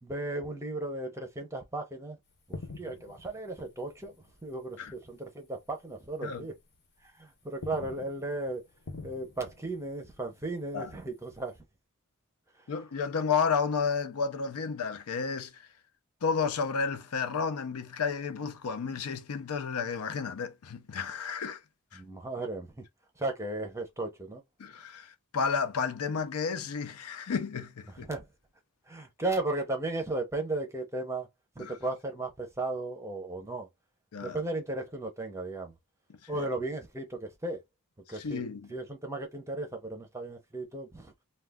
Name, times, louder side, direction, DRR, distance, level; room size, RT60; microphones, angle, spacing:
voice 1, 0.0-2.2 2.5-4.1 4.4-6.6 7.1-8.6 9.0-11.5 21.9-22.7 23.2-24.4 27.9-28.3 28.9-31.3 31.6-33.7 34.2-35.7 36.3-37.6 38.1-38.4 38.7-41.1, right 2 dB, 15° right, 0.6 m, -35 dB
sound 1, 2.3-5.3 5.5-5.8 6.3-7.1 7.4-11.6, left 3 dB, 50° left, 0.9 m, -48 dB
voice 2, 12.7-15.7 16.2-21.6 21.9-22.0 24.6-28.1 31.6-31.8 34.1-34.4 36.2-36.4 38.1-38.7, left 5 dB, 70° left, 0.5 m, -32 dB
2.4 x 2.3 x 3.4 m
head